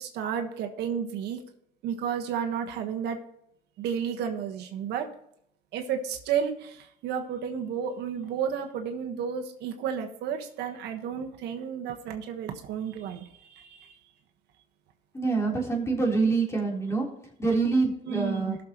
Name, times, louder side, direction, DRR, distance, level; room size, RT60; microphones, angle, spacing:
voice 1, 0.0-1.4 1.8-3.2 3.8-5.1 5.7-13.9 18.1-18.6, right 8 dB, 80° right, 4 dB, 1.3 m, -32 dB
voice 2, 15.1-17.1 17.4-18.6, right 4 dB, 15° left, -2 dB, 3.5 m, -26 dB
18.5 x 6.7 x 3.0 m, 0.74 s
cardioid pair, 110°, 17 cm